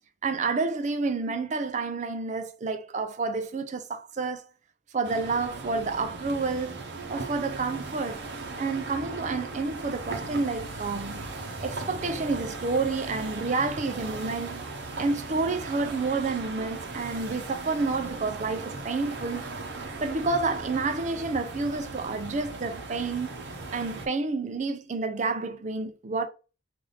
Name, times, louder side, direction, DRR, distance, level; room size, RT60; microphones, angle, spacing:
voice 1, 0.2-4.5 4.9-6.8 7.1-8.2 8.6-14.6 15.0-19.5 20.0-23.3 23.7-26.3, right 3 dB, 45° right, 0.5 m, -29 dB
sound 1, 5.0-24.1, right 3 dB, 75° right, 0.9 m, -38 dB
4.0 x 2.6 x 3.3 m
head